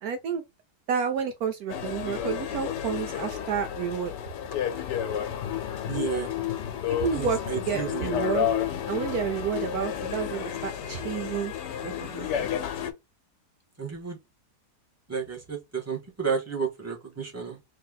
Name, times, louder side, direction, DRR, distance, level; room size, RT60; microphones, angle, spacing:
voice 1, 0.0-0.4 0.9-4.1 6.9-8.5 8.9-11.5 11.8-12.5, right 7 dB, 70° right, 1.1 m, -30 dB
sound 1, 1.7-12.9, left 9 dB, 90° left, 1.4 m, -31 dB
voice 2, 5.9-6.3 7.1-8.1 13.8-14.2 15.1-17.6, right 6 dB, 10° right, 1.4 m, -32 dB
3.4 x 3.3 x 3.6 m
omnidirectional pair, 1.8 m